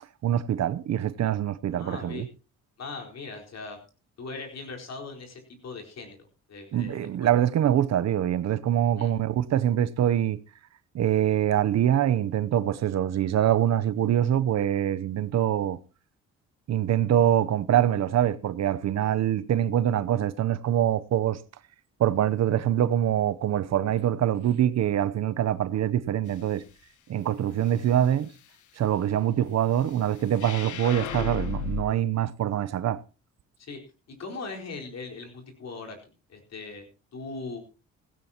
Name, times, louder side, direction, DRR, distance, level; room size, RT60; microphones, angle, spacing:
voice 1, 0.2-2.3 6.7-10.4 10.9-15.8 16.7-21.4 22.0-26.6 27.1-28.3 28.8-33.0, right 11 dB, 60° right, 0.8 m, -24 dB
voice 2, 1.7-2.3 2.8-3.8 4.2-6.2 6.5-7.3 9.0-9.1 33.6-33.8 34.1-36.8 37.1-37.6, left 3 dB, 60° left, 4.4 m, -39 dB
sound 1, 30.3-31.9, left 6 dB, 75° left, 1.4 m, -33 dB
17.0 x 16.0 x 2.9 m
cardioid pair, 90°, 30 cm